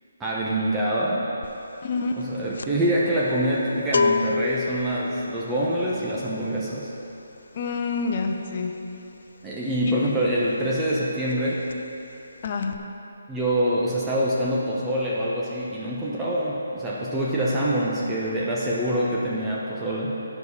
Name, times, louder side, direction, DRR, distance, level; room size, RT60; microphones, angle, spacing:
voice 1, 0.2-1.3 2.2-6.9 9.4-11.6 13.3-20.1, right 1 dB, 10° right, -7 dB, 0.9 m, -25 dB
sound 1, 1.4-1.7 2.0-10.5 10.8-11.0 11.3-12.1 12.4-12.8, left 4 dB, 70° left, 0.3 m, -30 dB
voice 2, 1.8-2.2 7.5-8.8 9.9-10.1 12.4-12.8, left 4 dB, 40° left, 3 dB, 0.7 m, -27 dB
9.3 x 4.8 x 5.3 m, 3.0 s
figure-of-eight pair, 150°, 0 cm